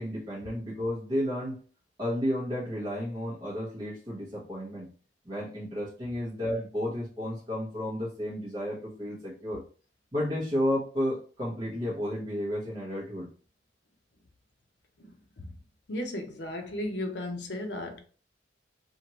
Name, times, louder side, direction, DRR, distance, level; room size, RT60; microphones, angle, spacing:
voice 1, 0.0-1.6 2.0-4.9 5.2-9.6 10.1-13.3, equal, 25° right, 0.9 m, -32 dB
voice 2, 15.9-18.0, left 1 dB, 70° left, 0.7 m, -34 dB
2.8 x 2.5 x 3.0 m
head